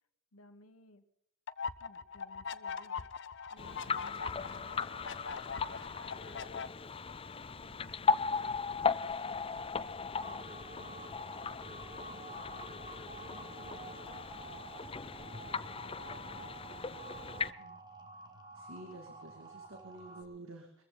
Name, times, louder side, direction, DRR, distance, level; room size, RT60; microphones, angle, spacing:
voice 1, 0.3-1.0 1.8-3.1 3.5-6.8 7.5-11.5 12.0-12.7 13.2-14.4 15.4-17.0 17.3-17.8, left 2 dB, 80° left, 9 dB, 1.5 m, -60 dB
sound 1, 1.5-6.7, left 5 dB, 60° left, 0.8 m, -42 dB
sound 2, 3.6-17.5, left 5 dB, 25° left, 0.5 m, -37 dB
sound 3, 10.2-20.2, right 3 dB, 20° right, 2.2 m, -50 dB
voice 2, 18.5-20.8, right 2 dB, 65° right, 3 dB, 2.4 m, -50 dB
22.5 x 15.0 x 4.0 m, 0.72 s
head